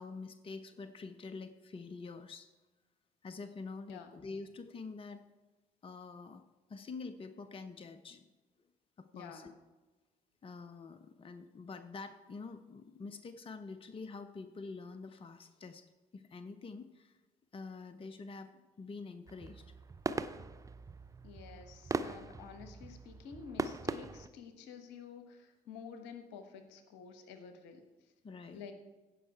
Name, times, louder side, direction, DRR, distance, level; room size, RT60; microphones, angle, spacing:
voice 1, 0.0-2.5 3.2-5.2 5.8-6.4 6.7-8.3 9.0-9.5 10.4-15.9 16.1-17.2 17.5-18.5 18.8-19.6 28.2-28.6, left 4 dB, 25° left, 11 dB, 0.7 m, -46 dB
voice 2, 9.1-9.5 21.2-27.8 28.5-28.7, left 6 dB, 65° left, 8 dB, 1.1 m, -50 dB
sound 1, 19.3-24.3, right 3 dB, 15° right, 0.6 m, -40 dB
16.0 x 5.5 x 4.6 m, 1.2 s
figure-of-eight pair, 45°, 20 cm